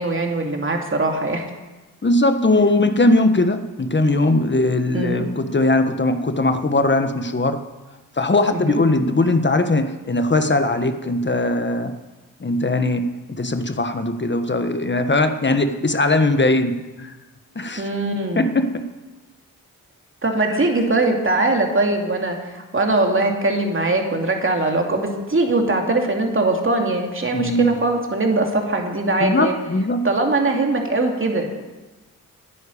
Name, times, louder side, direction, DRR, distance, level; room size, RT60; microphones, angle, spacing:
voice 1, 0.0-1.4 4.9-5.2 8.5-8.8 17.8-18.5 20.2-29.5 30.0-31.5, right 2 dB, 35° right, 2 dB, 2.7 m, -21 dB
voice 2, 2.0-7.6 8.2-11.9 12.4-17.1 17.5-17.9 18.3-18.8 20.5-20.6 27.3-27.7 29.2-30.1, left 2 dB, 30° left, 8 dB, 1.3 m, -20 dB
10.0 x 10.0 x 8.6 m, 1.2 s
cardioid pair, 55°, 35 cm